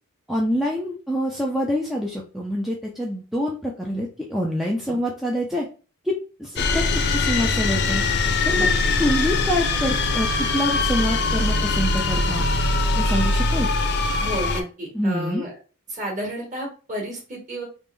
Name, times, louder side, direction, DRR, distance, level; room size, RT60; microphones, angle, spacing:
voice 1, 0.3-5.7 6.1-6.2 6.4-8.0 8.4-8.7 9.0-12.5 12.9-13.7 14.9-15.5, equal, ahead, -3 dB, 0.4 m, -26 dB
sound 1, 6.6-14.6, left 3 dB, 50° left, 0.5 m, -22 dB
voice 2, 14.2-15.5 15.9-17.6, equal, 35° right, -1 dB, 1.5 m, -31 dB
3.5 x 2.5 x 3.2 m, 0.35 s
head